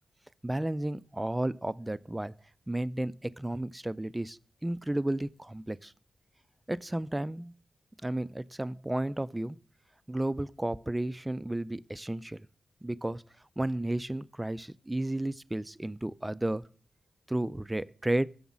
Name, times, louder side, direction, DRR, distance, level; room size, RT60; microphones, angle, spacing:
voice 1, 0.4-2.3 2.7-5.9 6.7-7.5 8.0-9.6 10.1-12.5 12.8-13.2 13.6-16.7 17.3-18.3, right 1 dB, 15° right, 0.4 m, -33 dB
7.1 x 5.4 x 7.3 m
cardioid pair, 45°, 0 cm